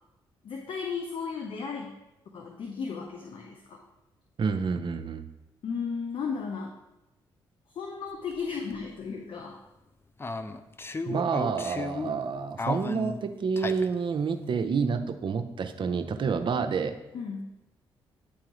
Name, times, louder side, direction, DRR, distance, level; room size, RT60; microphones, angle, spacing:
voice 1, 0.4-1.9 2.3-3.8 5.6-6.7 7.7-9.6 17.1-17.5, left 5 dB, 60° left, 1 dB, 0.8 m, -35 dB
voice 2, 4.4-5.2 11.1-16.9, right 5 dB, 55° right, 8 dB, 0.7 m, -28 dB
sound 1, 8.3-8.4 8.7-8.8 10.2-12.2 12.6-13.9, left 3 dB, 25° left, 0.5 m, -34 dB
9.8 x 3.7 x 3.1 m, 0.96 s
supercardioid pair, 50°, 10 cm